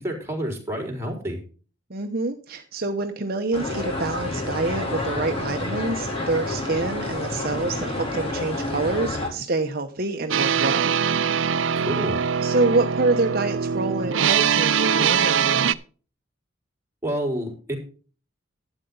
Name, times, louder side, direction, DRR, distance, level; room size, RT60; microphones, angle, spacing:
voice 1, 0.0-1.4 11.7-12.2 17.0-17.8, right 1 dB, 15° right, 0 dB, 4.0 m, -29 dB
voice 2, 1.9-10.9 12.4-15.7, right 3 dB, 50° right, 5 dB, 1.0 m, -26 dB
sound 1, 3.5-9.3, left 2 dB, 30° left, 4.1 m, -29 dB
sound 2, 10.3-15.7, right 7 dB, 80° right, 0.6 m, -22 dB
12.0 x 9.0 x 3.9 m, 0.38 s
head